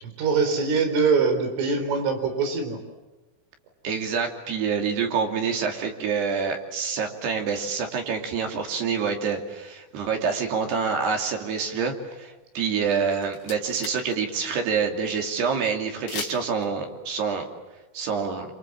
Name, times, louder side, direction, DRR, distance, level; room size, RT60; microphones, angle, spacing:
voice 1, 0.0-2.8, right 4 dB, 90° right, 6 dB, 6.6 m, -23 dB
voice 2, 3.8-17.5 17.9-18.5, right 6 dB, 60° right, 4 dB, 4.6 m, -27 dB
sound 1, 12.8-12.9 13.1-14.2 14.4-14.5 16.1-16.6, left 7 dB, 65° left, 4.9 m, -36 dB
28.5 x 27.5 x 7.5 m, 1.1 s
omnidirectional pair, 5.5 m